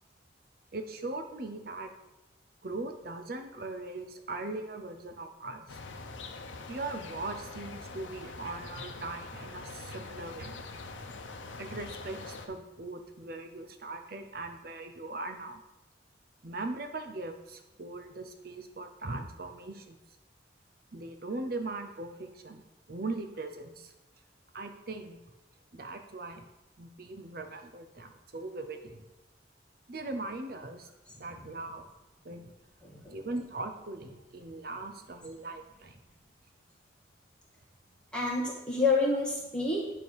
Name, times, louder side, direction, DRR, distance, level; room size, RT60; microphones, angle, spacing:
voice 1, 0.7-1.9 2.6-5.8 6.7-10.6 10.9-11.0 11.6-15.6 16.4-20.0 20.9-22.6 22.9-23.9 24.5-25.2 25.7-26.5 26.8-29.1 29.9-30.9 31.2-31.9 32.2-32.5 33.1-36.0 39.1-39.2, right 2 dB, 50° right, 7 dB, 0.7 m, -40 dB
sound 1, 5.7-12.5, left 3 dB, 85° left, 0.8 m, -44 dB
voice 2, 32.8-33.1 38.1-40.0, left 3 dB, 5° left, -4 dB, 1.7 m, -29 dB
9.5 x 3.7 x 6.4 m, 0.97 s
head